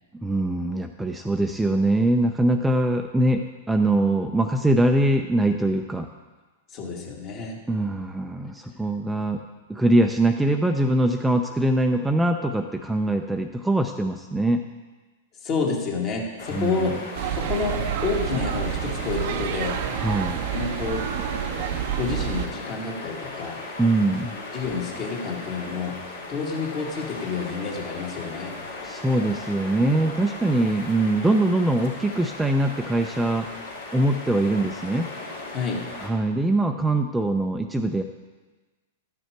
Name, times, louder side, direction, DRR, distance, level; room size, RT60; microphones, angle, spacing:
voice 1, 0.2-6.1 7.7-9.4 9.7-14.6 16.5-16.9 19.9-20.4 23.8-24.3 28.8-33.5 33.9-35.1 36.0-38.0, right 1 dB, 5° right, 4 dB, 0.5 m, -22 dB
voice 2, 6.7-7.6 15.4-17.0 17.3-19.8 20.5-21.1 22.0-23.6 24.5-26.0 26.3-28.6 35.5-35.9, left 4 dB, 40° left, -1 dB, 2.1 m, -29 dB
sound 1, 16.4-36.1, left 3 dB, 75° left, 2.4 m, -37 dB
sound 2, 17.2-22.5, right 10 dB, 60° right, 0.6 m, -28 dB
12.5 x 6.4 x 4.6 m, 1.3 s
hypercardioid pair, 115°, 0 cm